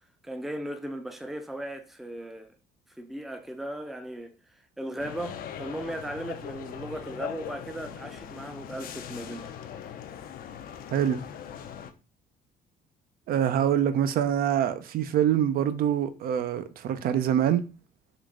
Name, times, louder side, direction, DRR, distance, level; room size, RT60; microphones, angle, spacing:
voice 1, 0.2-2.5 2.9-9.5, right 1 dB, ahead, 0.4 m, -37 dB
sound 1, 5.0-11.9, left 9 dB, 60° left, 0.5 m, -40 dB
voice 2, 13.3-17.6, right 10 dB, 60° right, 0.4 m, -25 dB
3.8 x 2.4 x 3.5 m
cardioid pair, 110°, 17 cm